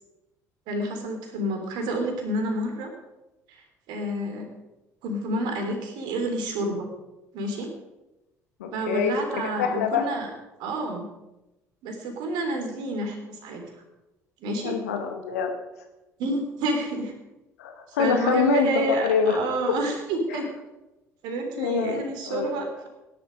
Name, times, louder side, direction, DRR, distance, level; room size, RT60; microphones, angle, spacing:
voice 1, 0.7-2.9 3.5-4.5 5.0-6.9 7.3-7.7 8.7-10.3 10.6-11.1 11.8-13.6 14.4-14.8 16.2-17.1 18.0-20.5 21.2-22.9, right 1 dB, 60° right, 4 dB, 3.6 m, -29 dB
voice 2, 8.6-10.1 14.6-15.5 17.6-19.4 20.3-20.4 21.6-22.0 22.3-22.6, left 6 dB, 70° left, 4 dB, 2.0 m, -25 dB
17.5 x 11.5 x 5.3 m, 1.0 s
figure-of-eight pair, 55°, 9 cm